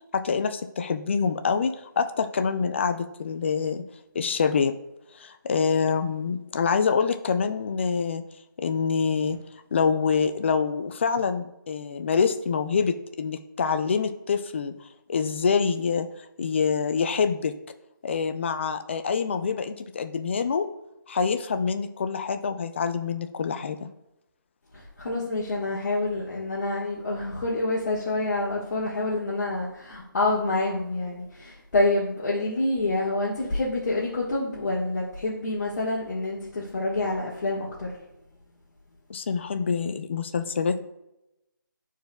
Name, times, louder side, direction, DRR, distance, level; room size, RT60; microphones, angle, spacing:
voice 1, 0.1-3.8 4.1-4.7 5.1-8.2 8.6-9.4 9.7-14.7 15.1-16.1 16.4-17.5 18.0-20.7 21.1-23.9 39.1-40.8, left 5 dB, 35° left, 9 dB, 0.4 m, -26 dB
voice 2, 25.0-37.9, left 2 dB, 55° left, -6 dB, 1.6 m, -27 dB
11.0 x 4.6 x 2.3 m, 0.89 s
figure-of-eight pair, 160°, 11 cm